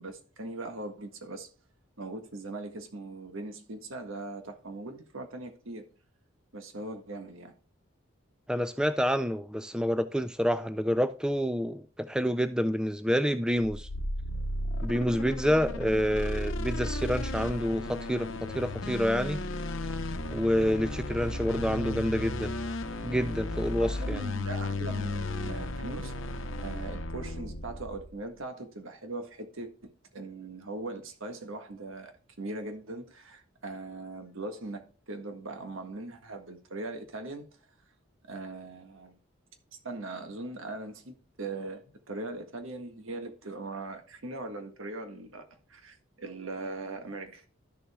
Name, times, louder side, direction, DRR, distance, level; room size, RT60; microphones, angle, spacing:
voice 1, 0.0-1.5 2.0-5.9 6.5-7.5 23.8-26.1 26.6-32.1 32.4-37.4 38.2-39.2 39.8-47.4, right 2 dB, 80° right, 1.6 m, -40 dB
voice 2, 8.5-13.9 14.8-19.4 20.3-22.5 23.0-24.2, equal, 5° right, 0.3 m, -28 dB
sound 1, 13.6-28.2, left 1 dB, 75° left, 0.8 m, -34 dB
12.5 x 7.0 x 2.3 m
head